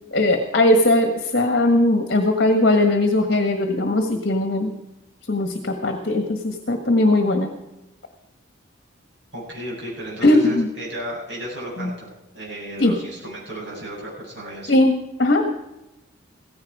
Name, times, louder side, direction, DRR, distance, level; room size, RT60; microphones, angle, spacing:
voice 1, 0.1-4.7 5.3-7.5 10.2-10.7 11.8-11.9 12.8-12.9 14.7-15.5, left 1 dB, 50° left, 5 dB, 1.5 m, -19 dB
voice 2, 9.3-14.7, right 1 dB, 60° right, -5 dB, 7.9 m, -34 dB
16.5 x 15.5 x 4.9 m, 0.98 s
head